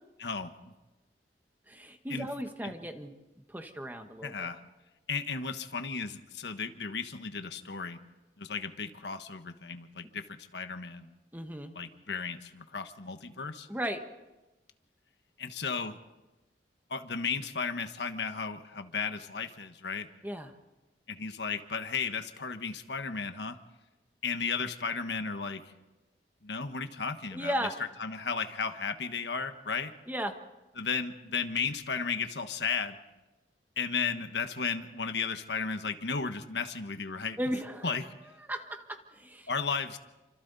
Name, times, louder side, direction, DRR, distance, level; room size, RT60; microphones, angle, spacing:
voice 1, 0.2-0.5 2.1-2.3 2.6-2.7 4.2-4.6 5.1-8.0 8.4-11.1 11.7-13.7 15.4-16.0 16.9-20.1 21.1-23.6 24.2-25.6 26.4-27.7 28.0-29.9 30.8-33.0 33.8-37.4 37.8-38.1 39.5-40.0, left 5 dB, 80° left, 8 dB, 1.3 m, -34 dB
voice 2, 1.7-3.2 3.5-4.5 11.3-11.7 13.7-14.0 20.2-20.5 27.3-27.7 30.1-30.4 37.4-37.9 38.5-39.5, equal, 10° right, 5 dB, 1.4 m, -35 dB
28.5 x 26.0 x 4.1 m, 1.1 s
head